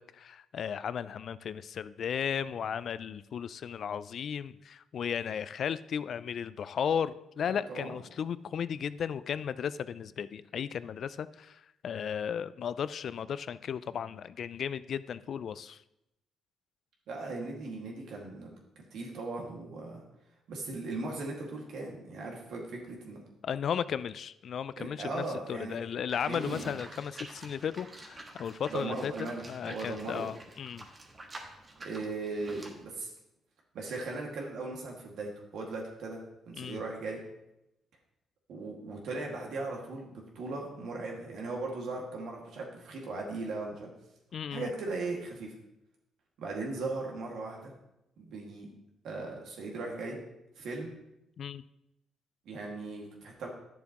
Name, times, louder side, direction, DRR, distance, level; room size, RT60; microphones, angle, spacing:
voice 1, 0.0-15.8 23.4-30.9 36.6-36.8 44.3-44.7 51.4-51.6, left 8 dB, 60° left, 16 dB, 0.3 m, -35 dB
voice 2, 7.5-7.9 17.1-18.5 18.9-20.0 20.5-23.2 24.8-25.8 26.3-26.8 28.7-30.2 31.8-33.1 33.7-37.2 38.5-43.9 44.5-45.5 46.4-47.7 48.2-48.7 49.0-50.2 50.6-50.9 52.5-53.5, right 3 dB, 75° right, 0 dB, 2.0 m, -38 dB
Livestock farm animals working animals, 26.1-32.8, right 2 dB, 30° right, 1.4 m, -48 dB
11.0 x 7.0 x 3.0 m, 0.87 s
cardioid pair, 90°, 0 cm